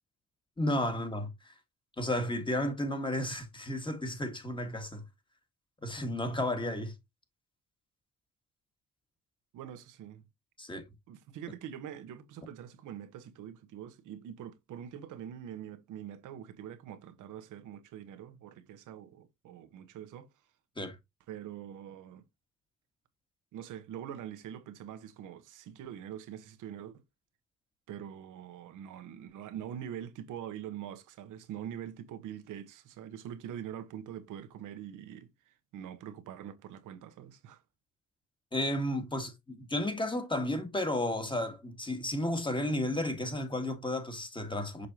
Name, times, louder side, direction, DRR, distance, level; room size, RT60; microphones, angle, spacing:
voice 1, 0.6-1.5 2.0-5.0 5.8-6.9 10.6-10.8 20.8-21.0 38.5-44.9, left 1 dB, 15° left, 1.9 m, -33 dB
voice 2, 9.5-10.2 11.1-20.3 21.3-22.2 23.5-27.0 27.9-37.6, right 10 dB, 85° right, 1.1 m, -44 dB
6.6 x 5.2 x 2.8 m
cardioid pair, 90°, 30 cm